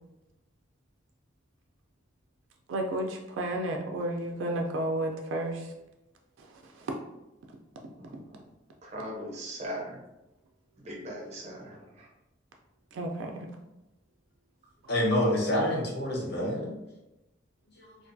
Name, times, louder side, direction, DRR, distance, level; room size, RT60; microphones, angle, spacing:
voice 1, 2.7-5.7 6.8-6.9 12.9-13.5, right 1 dB, 85° right, 3 dB, 0.3 m, -32 dB
voice 2, 8.0-8.4 8.8-10.0 10.8-12.1, equal, 35° right, -1 dB, 0.6 m, -39 dB
voice 3, 14.9-16.8 17.8-17.9, left 1 dB, 60° left, -2 dB, 0.7 m, -27 dB
2.4 x 2.3 x 2.5 m, 0.97 s
head